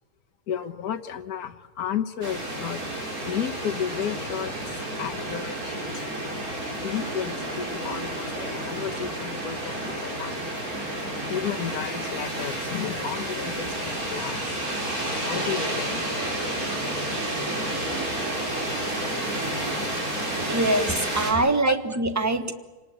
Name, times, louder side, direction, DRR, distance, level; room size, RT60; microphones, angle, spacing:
voice 1, 0.5-6.1 6.8-10.5 11.3-14.6 15.2-16.2 19.6-19.7 21.6-21.8, left 8 dB, 65° left, 3 dB, 1.6 m, -33 dB
sound 1, 2.2-21.3, right 1 dB, 60° right, 5.3 m, -30 dB
voice 2, 20.5-22.5, right 2 dB, 10° right, 8 dB, 1.2 m, -23 dB
27.5 x 19.0 x 8.9 m, 1.2 s
omnidirectional pair, 1.8 m